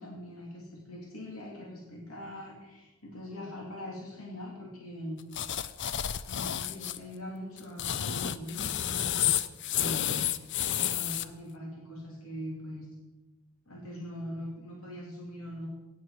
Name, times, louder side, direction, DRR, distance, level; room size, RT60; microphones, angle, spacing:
voice 1, 0.0-5.2 6.3-9.1 9.7-10.3 10.7-12.9 13.7-15.7, left 1 dB, 85° left, -2 dB, 2.7 m, -42 dB
sound 1, 5.3-7.0 7.6-11.2, left 10 dB, 55° left, 0.5 m, -30 dB
17.0 x 8.7 x 4.9 m, 1.1 s
head